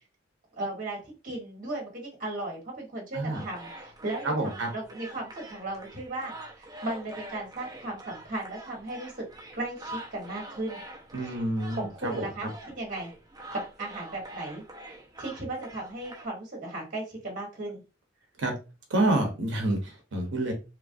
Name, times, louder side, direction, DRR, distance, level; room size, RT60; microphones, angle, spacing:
voice 1, 0.5-9.2 9.5-10.8 11.2-11.4 11.7-13.1 13.5-14.6 15.2-17.8, right 2 dB, 45° right, -1 dB, 1.1 m, -36 dB
sound 1, 3.3-16.3, right 1 dB, 20° right, 0.6 m, -45 dB
voice 2, 4.2-4.7 11.1-12.3 18.4-18.5 18.9-20.5, right 1 dB, 75° right, 2 dB, 0.7 m, -28 dB
3.1 x 2.4 x 2.5 m, 0.30 s
head